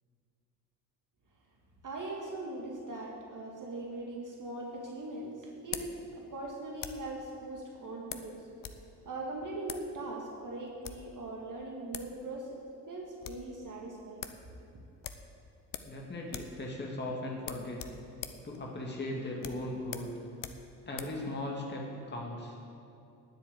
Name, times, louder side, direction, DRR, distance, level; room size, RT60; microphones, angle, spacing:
voice 1, 1.8-8.5 9.1-12.6 12.9-14.2, right 2 dB, 40° right, -1 dB, 2.0 m, -40 dB
sound 1, 4.2-7.2 8.1-8.8 9.1-9.2 9.6-9.9 10.6-11.1 11.7-11.8 11.9-12.2 12.5-12.6 12.9-13.5 13.8-13.9 14.2-14.4 15.0-16.0 16.3-16.6 16.9-17.0 17.4-21.2, left 8 dB, 40° left, 1.0 m, -44 dB
voice 2, 15.8-17.8 18.4-20.1 20.9-22.6, left 1 dB, 20° left, -2 dB, 2.1 m, -38 dB
9.9 x 8.5 x 8.6 m, 2.6 s
figure-of-eight pair, 45°, 48 cm